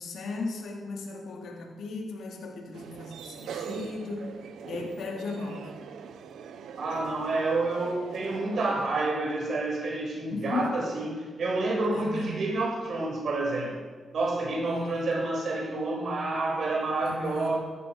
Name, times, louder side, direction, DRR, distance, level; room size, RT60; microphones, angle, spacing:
voice 1, 0.0-5.8 10.3-10.7 11.9-12.4 14.6-15.1 17.0-17.6, left 3 dB, 75° left, 0 dB, 3.3 m, -36 dB
sound 1, 2.7-8.9, right 7 dB, 85° right, 1.1 m, -41 dB
voice 2, 6.8-13.8 14.1-17.6, right 2 dB, 60° right, -1 dB, 5.8 m, -29 dB
17.0 x 14.0 x 4.9 m, 1.4 s
cardioid pair, 80°, 0 cm